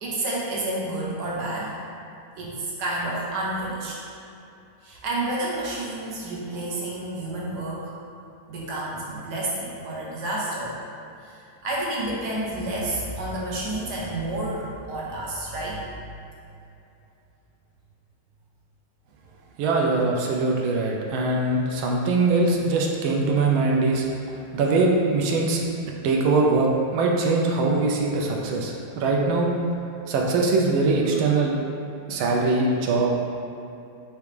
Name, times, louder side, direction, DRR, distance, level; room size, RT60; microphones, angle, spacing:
voice 1, 0.0-1.7 2.4-4.0 4.8-7.9 8.5-10.8 11.2-16.1, right 1 dB, 60° right, -5 dB, 1.2 m, -30 dB
voice 2, 19.6-24.0 24.5-25.6 26.0-29.6 30.1-31.6 32.1-33.2, right 3 dB, 80° right, 0 dB, 1.3 m, -22 dB
4.7 x 3.0 x 3.3 m, 2.7 s
omnidirectional pair, 2.3 m